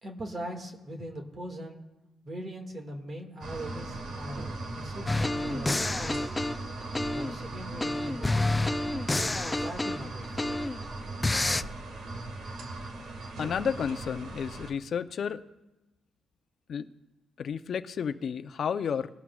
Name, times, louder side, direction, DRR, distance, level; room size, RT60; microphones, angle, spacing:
voice 1, 0.0-1.8 2.2-6.5 7.0-8.9 9.5-10.4, right 1 dB, 40° right, 3 dB, 1.9 m, -41 dB
sound 1, 3.4-14.7, right 2 dB, 65° right, 1.8 m, -38 dB
sound 2, 5.1-7.4 7.8-10.8 11.2-11.6, left 2 dB, 15° left, 0.3 m, -29 dB
voice 2, 13.4-15.4 16.7-16.9 17.4-19.1, left 7 dB, 55° left, 11 dB, 0.6 m, -31 dB
21.0 x 12.0 x 2.4 m, 0.99 s
cardioid pair, 90°, 0 cm